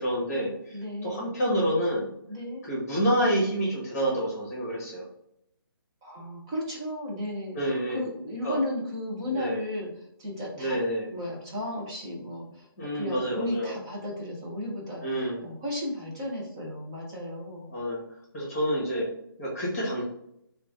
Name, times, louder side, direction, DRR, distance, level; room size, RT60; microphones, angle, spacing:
voice 1, 0.0-0.8 1.0-2.1 2.7-5.0 7.5-8.0 8.4-8.6 9.3-9.6 10.6-11.1 12.8-13.7 15.0-15.4 17.7-18.0 18.3-19.1 19.4-20.0, equal, 10° left, -5 dB, 1.2 m, -28 dB
voice 2, 0.7-1.3 2.3-2.6 6.0-7.6 7.9-10.8 11.1-17.7, left 1 dB, 15° right, -3 dB, 0.6 m, -34 dB
6.7 x 2.3 x 2.6 m, 0.76 s
hypercardioid pair, 175°, 12 cm